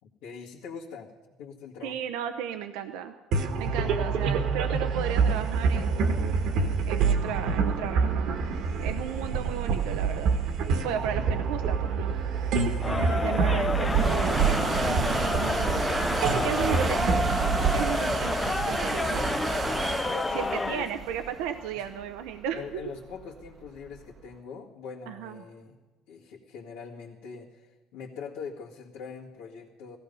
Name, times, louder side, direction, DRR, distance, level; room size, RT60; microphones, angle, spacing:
voice 1, 0.0-1.1 1.4-2.0 4.2-4.4 13.1-13.5 16.6-17.0 20.0-20.9 21.7-21.9 22.3-25.7 26.1-30.0, left 6 dB, 85° left, -6 dB, 2.1 m, -42 dB
voice 2, 1.8-3.1 3.6-6.4 6.8-8.4 8.8-10.4 10.8-12.8 13.1-17.3 17.7-19.3 20.3-22.8 25.1-25.4, right 9 dB, 90° right, 7 dB, 0.8 m, -35 dB
sound 1, 3.3-18.9, right 5 dB, 65° right, 1.5 m, -27 dB
sound 2, 10.9-24.2, right 4 dB, 30° right, 0.9 m, -33 dB
Crowd, 12.8-20.9, left 3 dB, 15° left, 0.5 m, -30 dB
18.0 x 14.5 x 5.5 m, 1.2 s
cardioid pair, 120°, 0 cm